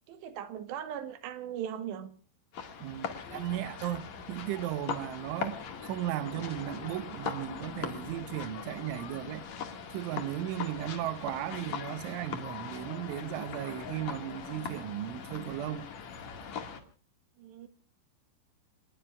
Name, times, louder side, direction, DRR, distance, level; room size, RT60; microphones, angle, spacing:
voice 1, 0.1-2.1 17.4-17.7, right 9 dB, 75° right, 3.6 m, -39 dB
sound 1, 2.5-16.8, left 6 dB, 50° left, 2.6 m, -40 dB
voice 2, 2.8-4.0 4.3-9.5 9.9-15.9, right 13 dB, 90° right, 3.4 m, -36 dB
29.0 x 20.0 x 2.4 m
omnidirectional pair, 5.3 m